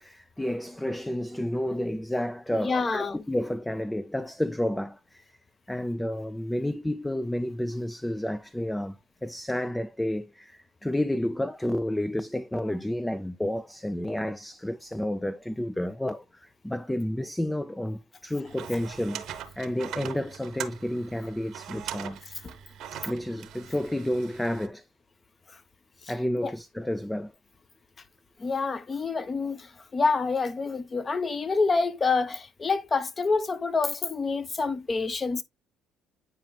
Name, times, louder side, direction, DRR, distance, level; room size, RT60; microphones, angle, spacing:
voice 1, 0.0-5.2 5.7-22.2 22.9-24.8 26.1-27.3, left 1 dB, 5° left, 0.4 m, -31 dB
voice 2, 2.6-3.3 22.3-22.5 25.5-25.6 26.0-26.1 26.4-26.5 28.4-35.4, left 4 dB, 30° left, 0.8 m, -27 dB
sound 1, 18.4-24.7, right 9 dB, 65° right, 0.9 m, -41 dB
9.1 x 4.7 x 2.2 m
supercardioid pair, 90°, 0 cm